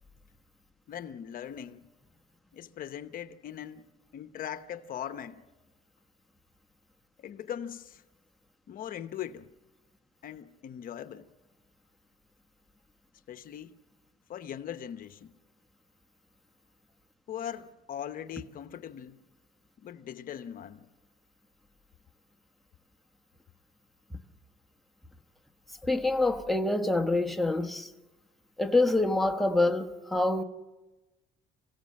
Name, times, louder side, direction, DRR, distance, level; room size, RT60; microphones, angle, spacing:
voice 1, 0.9-1.9 2.5-3.9 4.1-5.4 7.2-8.0 8.7-9.5 10.2-11.3 13.3-13.8 14.3-15.3 17.3-19.2 19.8-20.9, left 9 dB, 55° left, 1.0 m, -40 dB
voice 2, 25.8-27.9 28.6-30.4, left 2 dB, ahead, 1.2 m, -26 dB
26.0 x 16.5 x 7.6 m
cardioid pair, 110°, 17 cm